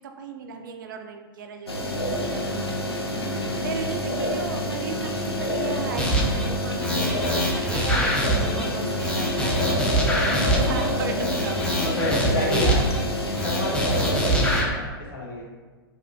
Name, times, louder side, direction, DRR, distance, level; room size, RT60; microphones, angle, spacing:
voice 1, 0.0-2.8 3.2-11.8, right 5 dB, 55° right, 5 dB, 0.4 m, -36 dB
sound 1, 1.7-14.6, left 1 dB, 90° left, 0.4 m, -27 dB
sound 2, 6.0-6.5 6.8-8.7 9.0-10.8 11.2-13.0 13.4-14.7, equal, 10° left, 0.5 m, -24 dB
voice 2, 11.8-12.8 13.3-15.4, left 2 dB, 60° left, -3 dB, 1.0 m, -30 dB
4.2 x 2.4 x 2.4 m, 1.3 s
figure-of-eight pair, 100°, 13 cm